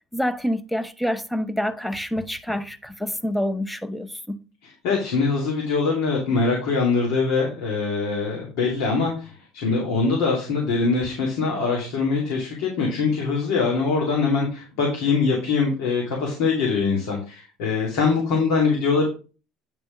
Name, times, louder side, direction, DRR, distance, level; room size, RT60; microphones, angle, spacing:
voice 1, 0.1-4.4, equal, 5° left, 0.9 m, -27 dB
voice 2, 4.8-19.1, left 4 dB, 80° left, 2.9 m, -23 dB
9.6 x 3.4 x 6.4 m
cardioid pair, 115°, 0 cm